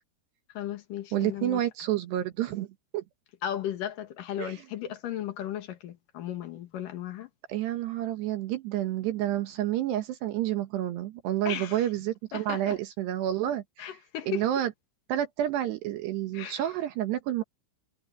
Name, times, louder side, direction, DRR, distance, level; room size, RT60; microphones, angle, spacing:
voice 1, 0.5-1.6 3.4-7.3 11.5-11.9 12.3-12.8 13.8-14.4 16.3-16.7, left 11 dB, 60° left, 2.5 m, -35 dB
voice 2, 1.1-2.7 2.9-3.0 4.4-4.6 7.5-13.9 14.3-14.7 15.1-17.4, right 12 dB, 70° right, 3.1 m, -29 dB
omnidirectional pair, 5.6 m